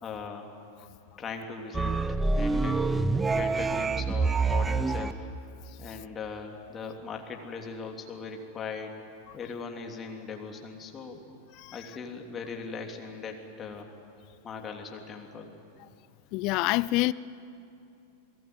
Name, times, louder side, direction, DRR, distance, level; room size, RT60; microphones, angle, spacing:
voice 1, 0.0-0.5 1.2-2.9 3.3-5.3 5.8-8.9 9.3-11.2 11.7-13.9 14.4-15.5, left 5 dB, 25° left, 3.2 m, -39 dB
sound 1, 1.7-5.1, right 3 dB, 10° right, 0.8 m, -26 dB
voice 2, 16.3-17.1, left 20 dB, 40° left, 0.6 m, -26 dB
28.5 x 19.5 x 9.5 m
figure-of-eight pair, 90°, 0 cm